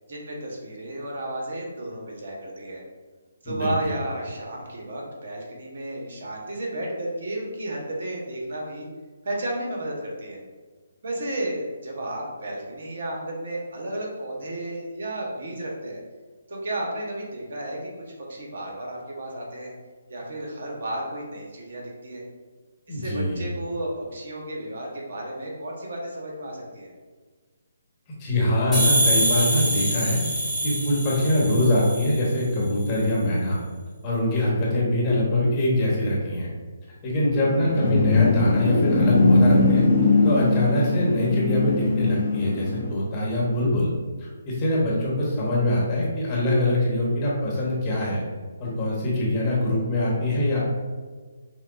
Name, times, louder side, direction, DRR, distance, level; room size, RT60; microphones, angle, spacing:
voice 1, 0.1-2.8 3.4-8.9 9.2-10.4 11.0-16.0 16.5-17.9 18.2-19.7 20.1-22.2 22.9-26.9, right 1 dB, 60° right, -2 dB, 1.0 m, -33 dB
voice 2, 3.4-3.9 22.9-23.5 28.2-30.2 30.6-33.6 34.0-36.5 37.0-39.9 40.2-43.9 44.2-48.2 48.6-50.6, left 1 dB, 25° left, -5 dB, 1.2 m, -23 dB
sound 1, 28.7-32.3, right 1 dB, 5° right, 1.2 m, -25 dB
sound 2, 37.3-42.9, left 3 dB, 55° left, 0.6 m, -21 dB
6.1 x 2.2 x 2.5 m, 1.4 s
figure-of-eight pair, 145°, 0 cm